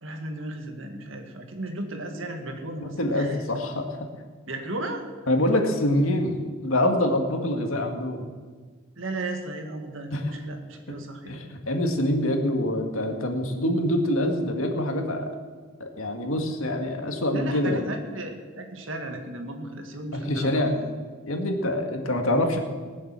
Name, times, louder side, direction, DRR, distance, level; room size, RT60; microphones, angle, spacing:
voice 1, 0.0-3.5 4.5-5.0 9.0-11.4 17.3-20.9, right 2 dB, 65° right, 5 dB, 2.0 m, -35 dB
voice 2, 2.8-4.1 5.3-8.3 10.1-10.2 10.9-11.0 11.3-15.3 15.8-17.8 20.3-20.7 21.3-22.6, left 1 dB, 75° left, 4 dB, 2.0 m, -25 dB
20.0 x 7.4 x 7.6 m, 1.5 s
head